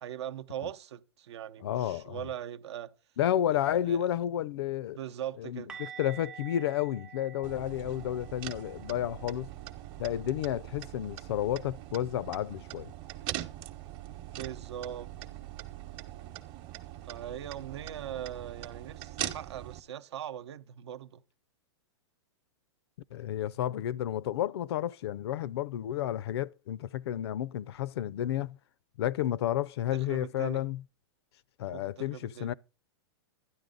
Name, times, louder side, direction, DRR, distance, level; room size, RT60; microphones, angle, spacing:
voice 1, 0.0-2.9 3.5-4.1 4.9-5.8 14.3-15.1 17.0-21.2 29.9-30.6 31.7-32.5, right 10 dB, 80° right, 0.7 m, -41 dB
voice 2, 1.6-2.2 3.2-5.0 5.4-9.5 10.0-12.9 23.1-28.6 29.0-30.8 31.6-32.5, left 11 dB, 70° left, 0.4 m, -31 dB
sound 1, 5.7-11.5 11.7-12.0 12.3-12.5 15.7-15.8, right 8 dB, 5° right, 0.5 m, -50 dB
sound 2, 7.4-19.8, right 13 dB, 35° right, 0.9 m, -42 dB
12.5 x 9.9 x 3.8 m
hypercardioid pair, 140°, 14 cm